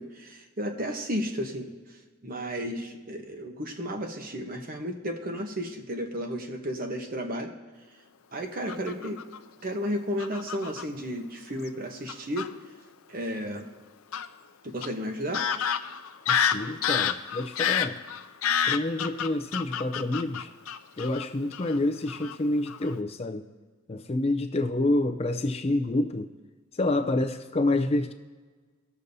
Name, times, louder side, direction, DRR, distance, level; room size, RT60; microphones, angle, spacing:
voice 1, 0.0-1.7 2.2-7.5 8.3-9.2 9.6-12.5 13.1-13.7 14.6-15.5, equal, 40° right, 4 dB, 1.0 m, -33 dB
Fowl / Bird vocalization bird call bird song, 8.7-9.4 10.2-10.8 11.7-11.8 12.1-12.5 14.1-14.3 14.8-14.9 15.3-21.2 21.5-21.8 22.1-22.3 22.7-22.9, left 8 dB, 80° left, 0.5 m, -28 dB
voice 2, 16.3-18.0 18.7-20.5 21.0-23.4 23.9-26.3 26.7-28.1, left 2 dB, 30° left, 5 dB, 0.4 m, -28 dB
19.0 x 6.9 x 2.7 m, 1.4 s
head